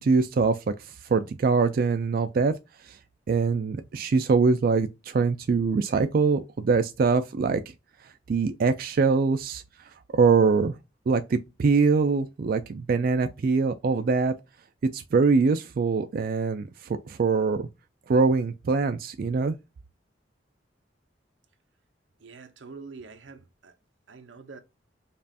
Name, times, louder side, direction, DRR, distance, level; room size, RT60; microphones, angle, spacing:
voice 1, 0.0-2.5 2.8-3.0 3.3-7.7 8.3-10.8 11.1-14.3 14.9-17.7 18.1-19.5, right 4 dB, 50° right, 0.3 m, -23 dB
voice 2, 22.2-23.8 24.1-24.6, right 4 dB, 85° right, 0.8 m, -45 dB
5.3 x 2.4 x 2.6 m
head